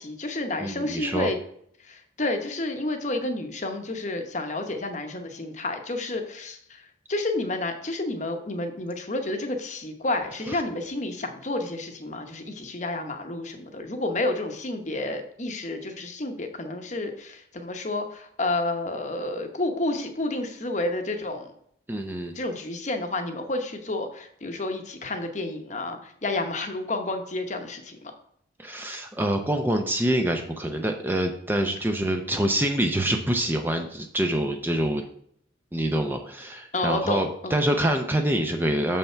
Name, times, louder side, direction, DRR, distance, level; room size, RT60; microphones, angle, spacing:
voice 1, 0.0-1.4 1.8-6.8 7.1-21.5 22.3-28.1 36.7-37.6, left 2 dB, 35° left, 6 dB, 0.9 m, -30 dB
voice 2, 0.6-1.3 10.5-10.6 21.9-22.4 28.6-35.0 35.7-39.0, right 1 dB, 10° right, 4 dB, 0.5 m, -26 dB
6.9 x 5.6 x 4.4 m, 0.67 s
head